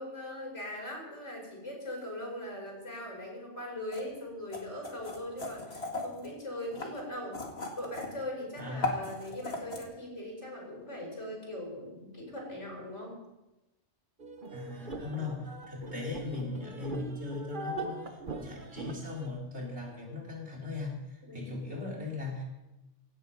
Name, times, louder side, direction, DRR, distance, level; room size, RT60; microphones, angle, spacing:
voice 1, 0.0-7.4 7.7-13.2 21.2-21.5, left 1 dB, 80° left, -1 dB, 5.4 m, -40 dB
sound 1, 3.9-4.0 4.5-6.3 6.7-8.2 8.6-9.8, left 3 dB, 60° left, 2.4 m, -36 dB
voice 2, 8.6-9.1 14.5-18.1 18.4-22.4, left 3 dB, 70° right, -2 dB, 3.9 m, -38 dB
sound 2, 14.2-19.3, right 2 dB, 45° right, 1.4 m, -41 dB
17.0 x 10.5 x 5.5 m, 1.0 s
omnidirectional pair, 1.2 m